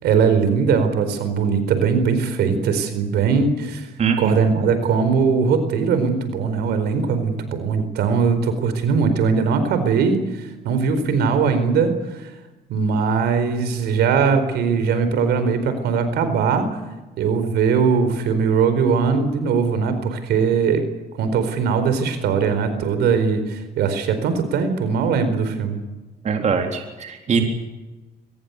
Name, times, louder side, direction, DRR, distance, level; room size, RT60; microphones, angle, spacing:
voice 1, 0.0-3.9 4.2-12.3 12.7-16.7 17.2-20.8 21.1-25.8, right 5 dB, 75° right, 10 dB, 4.5 m, -20 dB
voice 2, 4.0-4.6 26.2-27.4, right 6 dB, 40° right, 4 dB, 3.8 m, -22 dB
23.5 x 21.0 x 8.3 m, 1.1 s
cardioid pair, 110°, 17 cm